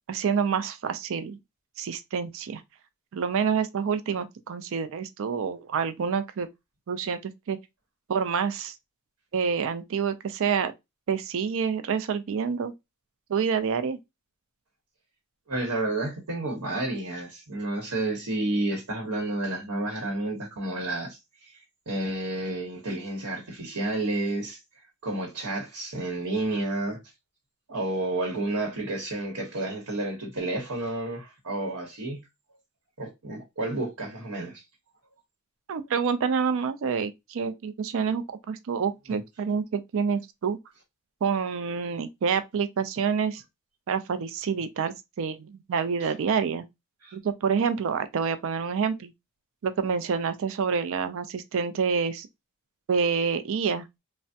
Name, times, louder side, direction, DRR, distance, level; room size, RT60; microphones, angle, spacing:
voice 1, 0.1-1.4 1.8-2.6 3.1-6.5 6.9-7.6 8.1-8.7 9.3-10.7 11.1-12.7 13.3-14.0 35.7-40.6 41.2-43.4 43.9-46.6 47.1-49.1 49.6-52.3 52.9-53.8, right 6 dB, 60° right, 0.4 m, -27 dB
voice 2, 15.5-21.6 21.9-24.6 25.0-27.0 27.7-32.2 33.0-34.6 38.1-38.2 39.1-39.2 46.0-46.1 47.0-47.1, right 2 dB, 80° right, 1.0 m, -31 dB
3.3 x 2.1 x 2.7 m
head